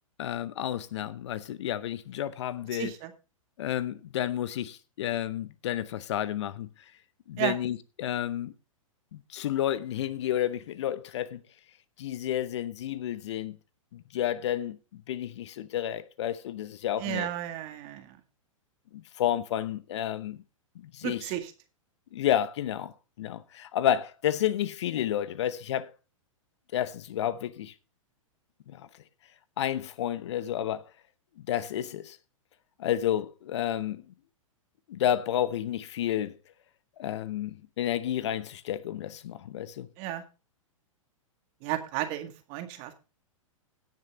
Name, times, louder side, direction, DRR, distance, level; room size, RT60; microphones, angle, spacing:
voice 1, 0.2-2.9 3.6-6.7 7.3-8.5 9.1-11.4 12.0-13.6 13.9-17.3 18.9-20.4 20.8-21.3 22.1-22.9 23.2-25.9 26.7-27.7 28.7-28.9 29.6-30.8 31.5-32.2 32.8-34.1 34.9-36.4 37.0-39.9, left 11 dB, 55° left, 0.9 m, -31 dB
voice 2, 2.7-3.1 7.4-7.6 17.0-18.2 21.0-21.5 40.0-40.2 41.6-42.9, right 13 dB, 40° right, 2.0 m, -33 dB
17.0 x 6.6 x 3.8 m
figure-of-eight pair, 105°, 17 cm